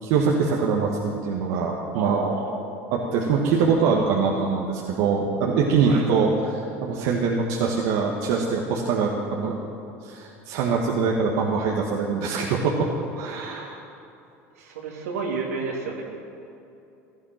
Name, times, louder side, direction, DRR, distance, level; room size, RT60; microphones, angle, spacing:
voice 1, 0.0-2.2 2.9-9.6 10.0-12.9 13.2-13.8, right 5 dB, 65° right, -1 dB, 1.6 m, -23 dB
voice 2, 1.9-2.6 5.8-6.1 14.6-16.0, right 4 dB, 80° right, 0 dB, 2.7 m, -30 dB
16.5 x 13.0 x 6.0 m, 2.7 s
hypercardioid pair, 75°, 8 cm